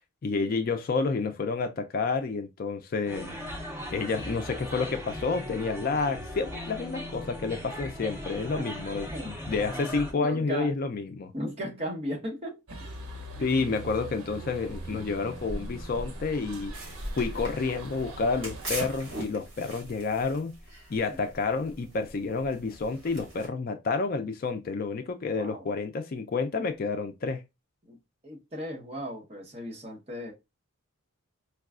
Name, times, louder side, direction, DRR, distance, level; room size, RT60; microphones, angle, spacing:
voice 1, 0.2-3.3 3.9-11.3 13.4-16.8 17.2-20.6 20.9-27.4, left 4 dB, 45° left, 0.4 m, -29 dB
sound 1, 3.1-10.1, equal, 10° right, 0.7 m, -38 dB
voice 2, 10.2-10.7 11.3-12.9 13.4-13.5 21.1-21.2 25.3-25.7 27.9-28.0 28.2-30.3, equal, 30° right, 1.0 m, -36 dB
sound 2, 12.7-19.0, right 1 dB, 85° right, 0.7 m, -40 dB
sound 3, 16.7-23.5, right 2 dB, 55° right, 2.0 m, -42 dB
4.6 x 2.3 x 2.3 m
head